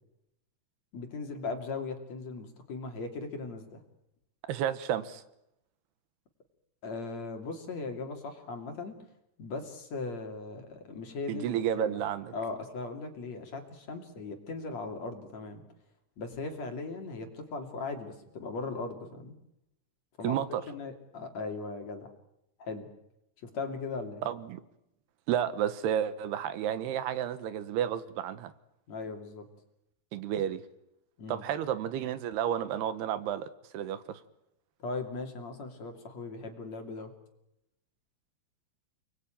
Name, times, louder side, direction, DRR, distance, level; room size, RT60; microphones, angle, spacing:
voice 1, 0.9-3.8 6.8-9.0 9.4-12.0 12.3-15.6 16.2-19.3 20.2-20.4 20.7-22.1 22.6-22.9 23.4-24.2 28.9-29.5 31.2-31.4 34.8-37.1, left 3 dB, 45° left, 4 dB, 3.6 m, -38 dB
voice 2, 4.5-5.2 11.3-12.3 20.2-20.6 24.2-24.6 25.3-28.5 30.1-30.6 31.3-33.5 33.7-34.2, right 10 dB, 85° right, 13 dB, 3.3 m, -31 dB
29.5 x 21.0 x 9.1 m, 0.84 s
omnidirectional pair, 4.6 m